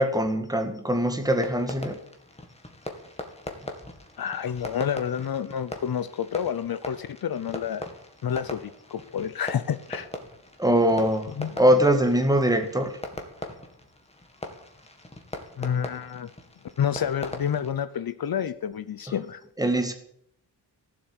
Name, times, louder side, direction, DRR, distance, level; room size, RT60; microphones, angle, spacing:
voice 1, 0.0-2.0 10.6-11.3 11.6-13.0 19.6-19.9, equal, 10° right, 7 dB, 1.9 m, -22 dB
Fireworks, 1.2-17.7, left 1 dB, 15° left, 2.1 m, -41 dB
voice 2, 4.2-7.8 8.2-10.1 11.4-11.6 15.6-16.3 16.8-19.4, left 8 dB, 60° left, 12 dB, 0.8 m, -29 dB
17.0 x 7.7 x 8.7 m, 0.70 s
wide cardioid pair, 150°, 41 cm